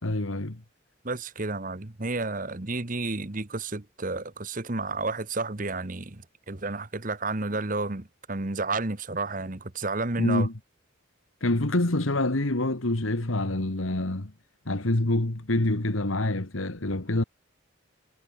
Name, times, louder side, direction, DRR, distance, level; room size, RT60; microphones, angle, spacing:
voice 1, 0.0-0.6 10.2-10.5 11.4-14.3 14.7-17.2, left 2 dB, 85° left, 1.9 m, -26 dB
voice 2, 1.0-10.5, right 3 dB, 40° right, 1.3 m, -31 dB
head